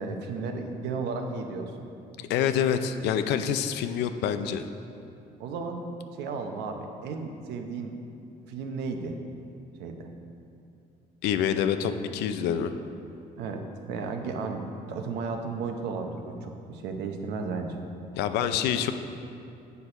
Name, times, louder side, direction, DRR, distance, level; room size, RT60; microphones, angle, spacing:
voice 1, 0.0-1.9 5.4-5.9 6.2-8.0 8.5-9.2 9.8-10.1 13.4-17.8, right 4 dB, 85° right, 4 dB, 0.8 m, -34 dB
voice 2, 2.2-4.6 11.2-12.7 18.2-18.9, left 8 dB, 85° left, 9 dB, 0.5 m, -26 dB
8.2 x 4.5 x 5.3 m, 2.7 s
cardioid pair, 110°, 17 cm